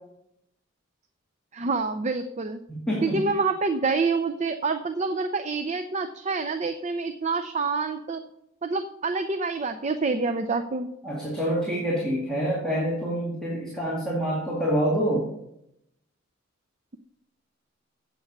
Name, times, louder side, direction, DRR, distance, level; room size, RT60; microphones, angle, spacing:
voice 1, 1.5-2.6 3.0-8.2 8.6-10.9, right 4 dB, 35° right, 8 dB, 0.5 m, -27 dB
voice 2, 2.7-3.2 11.0-15.3, equal, 5° left, -6 dB, 2.2 m, -26 dB
8.1 x 8.0 x 6.7 m, 0.81 s
head